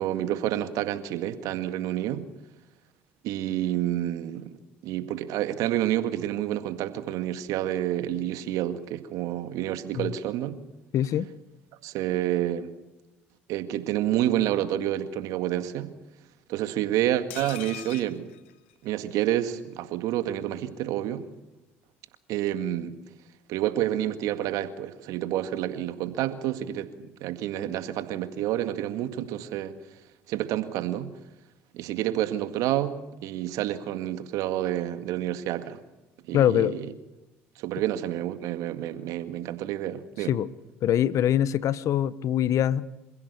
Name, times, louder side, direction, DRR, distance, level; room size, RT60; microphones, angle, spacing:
voice 1, 0.0-2.3 3.2-4.5 4.8-10.6 11.8-12.7 13.5-15.9 16.5-18.3 18.8-21.2 22.3-22.9 23.5-29.7 30.3-31.1 31.7-35.8 36.3-36.9 37.6-40.3, right 12 dB, 70° right, 1.9 m, -29 dB
voice 2, 10.9-11.3 36.3-36.7 40.3-40.5 40.8-42.9, left 10 dB, 60° left, 1.1 m, -23 dB
sound 1, 17.3-19.3 19.6-19.7 19.9-20.0, left 14 dB, 85° left, 1.2 m, -42 dB
27.0 x 16.0 x 6.9 m
hypercardioid pair, 65°, 6 cm